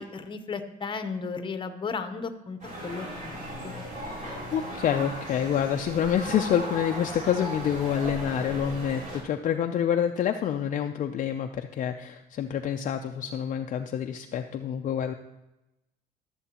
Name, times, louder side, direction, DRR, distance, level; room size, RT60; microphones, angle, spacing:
voice 1, 0.0-2.6 2.8-3.4 3.6-3.8, left 5 dB, 30° left, 9 dB, 0.9 m, -34 dB
sound 1, 2.6-9.2, equal, 45° right, 3.5 m, -37 dB
voice 2, 4.5-15.1, left 9 dB, 50° left, 4 dB, 0.5 m, -27 dB
15.0 x 7.1 x 2.9 m, 0.95 s
cardioid pair, 110°, 17 cm